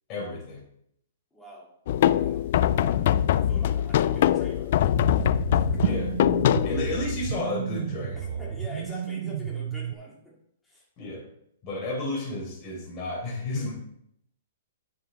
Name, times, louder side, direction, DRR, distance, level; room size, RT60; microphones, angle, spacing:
voice 1, 0.1-0.6 5.8-6.1 6.6-8.4 11.0-11.3 11.6-13.7, left 2 dB, 30° left, -2 dB, 4.2 m, -32 dB
voice 2, 1.3-1.7 2.2-5.2 5.5-6.0 8.1-10.3 10.6-10.8, left 1 dB, 10° left, -5 dB, 3.0 m, -45 dB
sound 1, 1.9-7.4, left 11 dB, 55° left, 0.4 m, -23 dB
sound 2, 4.9-9.9, right 9 dB, 65° right, 0.4 m, -31 dB
10.5 x 7.3 x 3.5 m, 0.73 s
hypercardioid pair, 150°, 0 cm